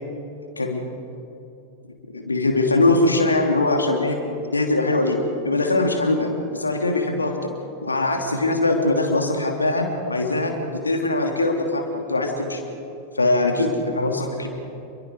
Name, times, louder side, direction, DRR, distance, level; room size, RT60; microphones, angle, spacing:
voice 1, 2.1-4.2 4.5-5.2 5.4-7.5 7.8-10.5 10.8-12.6 13.1-14.5, left 2 dB, 80° left, 3 dB, 3.0 m, -21 dB
29.0 x 22.5 x 4.8 m, 2.8 s
figure-of-eight pair, 90°, 0 cm